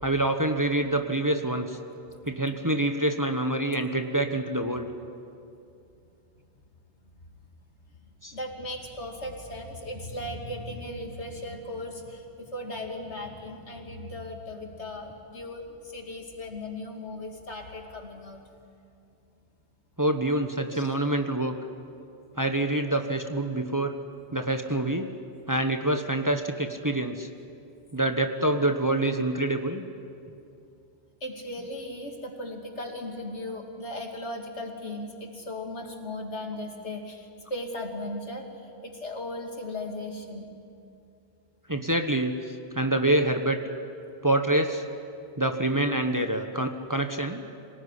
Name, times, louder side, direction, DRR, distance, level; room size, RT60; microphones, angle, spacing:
voice 1, 0.0-1.8 2.3-4.9 8.2-8.3 20.0-21.6 22.4-23.9 24.3-25.1 25.5-27.3 27.9-29.8 41.7-43.6 44.2-44.8 45.4-47.4, right 1 dB, 20° right, 6 dB, 1.1 m, -26 dB
voice 2, 8.3-15.7 15.9-18.4 20.7-20.9 31.2-38.4 38.8-40.5, left 1 dB, 80° left, 2 dB, 2.9 m, -37 dB
26.0 x 18.5 x 10.0 m, 2.6 s
omnidirectional pair, 1.1 m